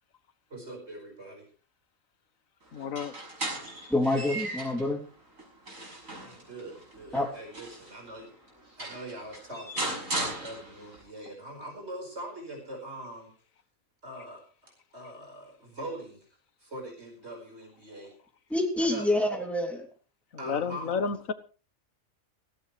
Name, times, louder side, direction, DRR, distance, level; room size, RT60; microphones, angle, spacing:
voice 1, 0.5-1.5 6.2-8.3 8.8-13.3 14.0-16.2 16.6-18.1 18.8-19.1 20.4-20.9, right 1 dB, 55° right, 2 dB, 5.5 m, -42 dB
voice 2, 2.7-3.2 20.3-21.3, left 5 dB, 85° left, 12 dB, 1.7 m, -31 dB
sound 1, 2.8-4.9 5.4-8.0 8.5-8.6 8.8-11.0, right 1 dB, 85° right, 7.0 m, -37 dB
voice 3, 3.9-5.1 7.1-7.3 18.5-19.9, left 1 dB, ahead, 2 dB, 2.9 m, -27 dB
18.5 x 16.5 x 3.3 m, 0.38 s
omnidirectional pair, 1.4 m